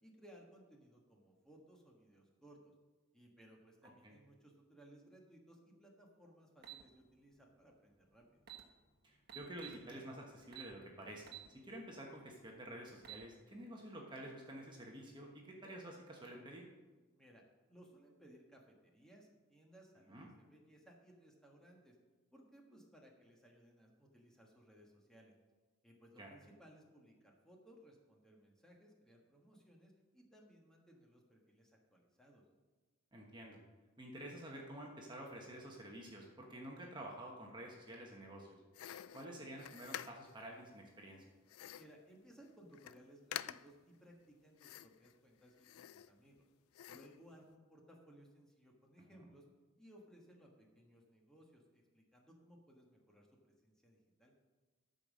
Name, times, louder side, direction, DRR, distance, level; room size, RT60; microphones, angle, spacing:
voice 1, 0.0-2.7 3.1-8.4 17.1-17.4 17.7-21.9 22.3-25.3 25.8-32.4 41.8-46.4 46.9-49.4 49.8-54.3, right 1 dB, 5° left, -1 dB, 1.4 m, -62 dB
sound 1, 6.6-6.8 8.0-8.1 8.4-8.6 9.3-9.8 10.5-10.7 11.3-11.5 11.9-12.0 12.8-13.2, right 12 dB, 50° right, 1.3 m, -50 dB
voice 2, 9.0-11.3 11.6-16.7 20.1-20.3 26.2-26.3 33.1-33.6 34.0-38.6 39.1-41.2 49.1-49.3, right 1 dB, 20° right, -1 dB, 1.2 m, -50 dB
sound 2, 38.7-40.4 41.5-42.0 42.4-42.5 42.7-43.0 43.3-43.8 44.6-45.1 45.6-46.4 46.7-47.2, left 11 dB, 80° left, 0.3 m, -48 dB
13.0 x 5.3 x 6.3 m, 1.3 s
head